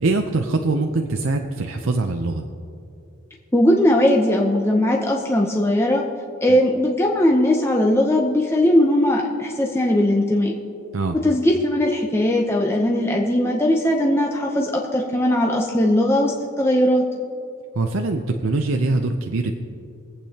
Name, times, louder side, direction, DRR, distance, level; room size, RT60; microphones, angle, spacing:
voice 1, 0.0-2.4 6.5-6.6 10.9-11.2 17.8-19.5, right 3 dB, 65° right, 4 dB, 0.6 m, -23 dB
voice 2, 3.5-6.0 6.4-10.5 11.2-17.0, left 1 dB, 10° left, -1 dB, 0.7 m, -19 dB
24.5 x 8.4 x 2.9 m, 2.6 s
head